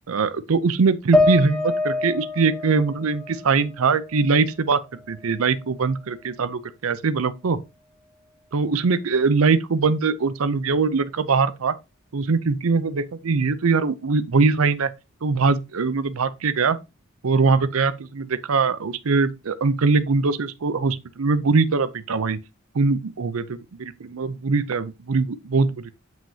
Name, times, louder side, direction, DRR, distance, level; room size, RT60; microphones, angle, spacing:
voice 1, 0.1-7.6 8.5-11.7 12.1-14.9 15.2-16.8 17.2-22.4 22.7-25.9, right 4 dB, 75° right, 0.6 m, -22 dB
sound 1, 1.1-4.5 4.9-6.0, left 2 dB, 5° left, 1.1 m, -26 dB
7.4 x 6.0 x 2.8 m
head